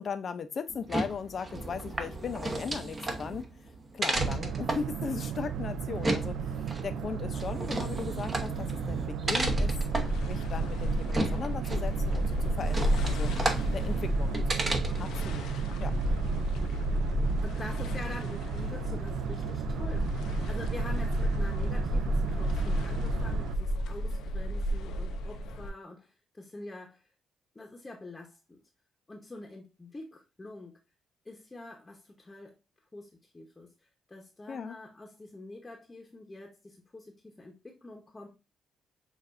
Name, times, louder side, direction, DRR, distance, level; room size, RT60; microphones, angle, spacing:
voice 1, 0.0-3.5 3.9-6.6 6.8-9.7 10.3-13.3 13.7-14.4 14.7-15.5 15.8-15.9 34.5-34.8, left 6 dB, 50° left, 0.6 m, -38 dB
sound 1, 0.7-15.2, right 2 dB, 30° right, 1.0 m, -34 dB
Boat Water vehicle, 4.1-23.6, right 7 dB, 75° right, 0.3 m, -35 dB
sound 2, 9.4-25.7, equal, 90° left, 0.7 m, -31 dB
voice 2, 17.4-27.1 27.5-28.6 29.1-30.8 31.2-32.6 32.9-33.7 34.1-38.3, left 2 dB, 20° left, 0.9 m, -46 dB
6.6 x 2.5 x 2.5 m
cardioid pair, 90°, 0 cm